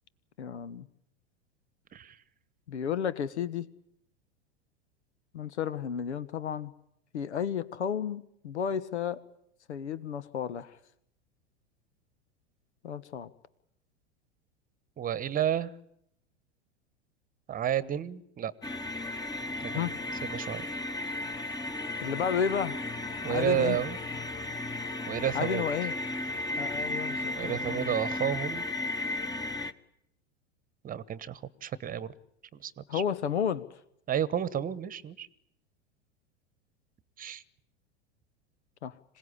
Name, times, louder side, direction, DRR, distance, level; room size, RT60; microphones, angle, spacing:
voice 1, 0.4-0.9 2.7-3.7 5.3-6.7 7.1-9.2 9.7-10.7 12.8-13.3 19.7-19.9 22.0-22.8 23.3-23.8 25.3-25.9 26.6-27.9 32.9-33.8 38.8-38.9, left 8 dB, 75° left, 17 dB, 1.2 m, -32 dB
voice 2, 15.0-15.7 17.5-18.5 19.6-19.9 20.2-20.6 23.2-24.0 25.1-25.6 27.4-28.6 30.8-32.1 32.6-33.0 34.1-35.3 37.2-37.4, right 10 dB, 25° right, 18 dB, 1.2 m, -31 dB
sound 1, 18.6-29.7, left 2 dB, 10° left, 1.3 m, -35 dB
26.5 x 17.5 x 9.9 m, 0.75 s
figure-of-eight pair, 90°, 34 cm